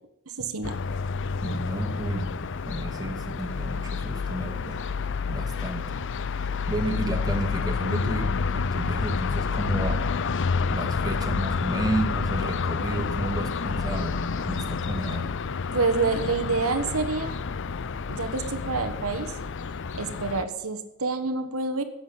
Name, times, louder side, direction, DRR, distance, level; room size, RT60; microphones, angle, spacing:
voice 1, 0.4-0.7 15.7-17.3 18.1-19.3 19.9-21.8, right 4 dB, 85° right, 8 dB, 1.4 m, -27 dB
sound 1, 0.6-20.4, left 5 dB, 60° left, 0.6 m, -29 dB
voice 2, 1.4-4.8 5.3-6.0 6.4-10.1 10.7-15.3, right 2 dB, 20° right, 2 dB, 2.4 m, -32 dB
15.5 x 7.9 x 9.7 m, 0.93 s
head